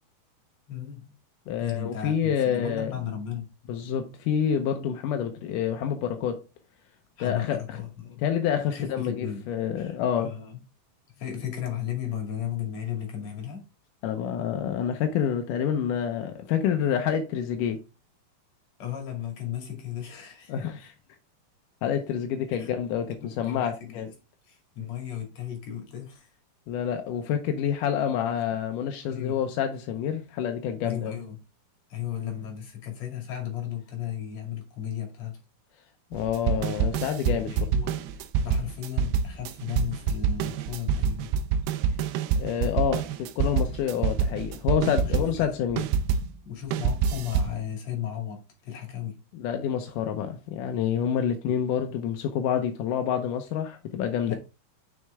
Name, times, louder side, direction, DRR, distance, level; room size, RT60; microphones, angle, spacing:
voice 1, 0.7-1.1 1.6-3.5 7.2-8.2 8.7-9.5 9.8-10.6 11.2-13.7 18.8-20.7 22.5-22.7 23.2-24.1 24.4-26.3 29.1-29.5 30.8-31.4 31.9-35.4 37.5-41.3 44.7-45.5 46.4-49.2 54.3-54.4, left 10 dB, 50° left, 3.2 m, -35 dB
voice 2, 1.5-2.9 3.7-6.4 7.2-7.6 8.2-10.3 14.0-17.8 20.5-20.8 21.8-24.1 26.7-31.1 36.1-37.5 42.4-45.9 49.3-54.4, left 8 dB, 75° left, 2.0 m, -28 dB
sound 1, 36.1-46.3 46.7-47.6, right 6 dB, 90° right, 2.6 m, -26 dB
6.6 x 6.4 x 3.5 m
omnidirectional pair, 4.4 m